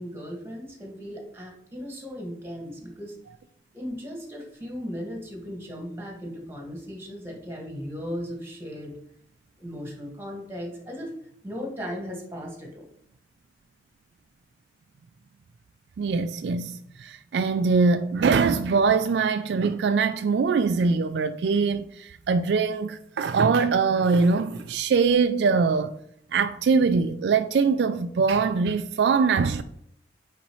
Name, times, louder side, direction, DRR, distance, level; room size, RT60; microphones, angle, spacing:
voice 1, 0.0-3.1 3.7-9.0 9.6-11.1 11.4-12.8, equal, 15° right, 1.6 m, -37 dB
voice 2, 16.0-25.9 26.3-29.6, right 5 dB, 70° right, 0.3 m, -22 dB
9.4 x 4.1 x 3.1 m
head